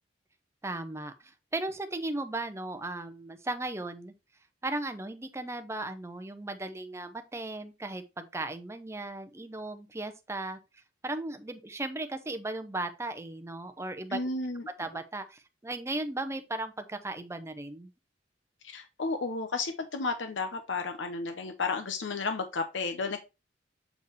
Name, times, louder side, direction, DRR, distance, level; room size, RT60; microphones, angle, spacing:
voice 1, 0.6-4.1 4.6-10.6 11.0-14.2 14.8-17.9, right 2 dB, 15° right, 0.6 m, -36 dB
voice 2, 14.1-14.7 18.6-23.2, left 3 dB, 85° left, 0.8 m, -32 dB
6.9 x 4.4 x 3.1 m
head